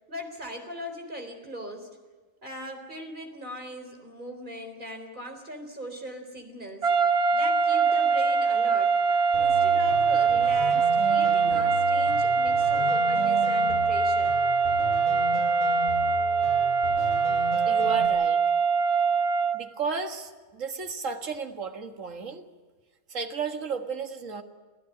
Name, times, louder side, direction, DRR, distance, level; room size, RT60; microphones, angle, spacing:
voice 1, 0.1-2.0 2.4-6.9 7.3-8.9 9.4-14.3, equal, 40° right, 5 dB, 4.0 m, -39 dB
sound 1, 6.8-19.7, right 5 dB, 55° right, 1.4 m, -23 dB
sound 2, 9.3-18.1, left 2 dB, 85° left, 5.0 m, -37 dB
voice 2, 17.0-18.4 19.5-22.5 23.1-24.4, right 5 dB, 75° right, 5 dB, 2.0 m, -34 dB
27.0 x 15.5 x 10.0 m, 1.4 s
omnidirectional pair, 1.3 m